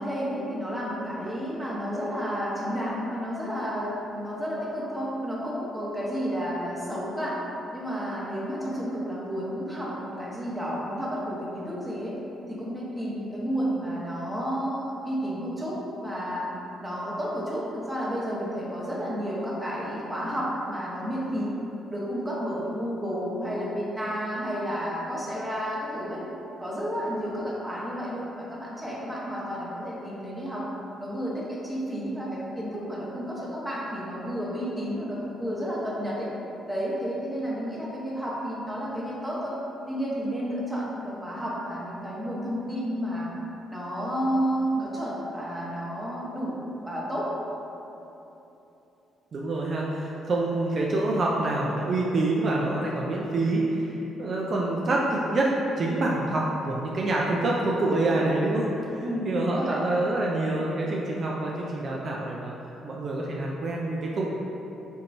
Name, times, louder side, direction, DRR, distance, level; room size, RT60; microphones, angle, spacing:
voice 1, 0.0-7.4 7.7-12.2 12.5-16.5 16.8-21.6 21.9-26.2 26.6-30.7 31.0-36.3 36.7-39.6 39.9-43.3 43.7-47.3 59.0-59.8, equal, 5° right, -7 dB, 0.9 m, -31 dB
voice 2, 49.3-62.5 62.8-64.3, right 2 dB, 50° right, -3 dB, 0.4 m, -26 dB
4.3 x 2.9 x 2.6 m, 3.0 s
cardioid pair, 90°, 0 cm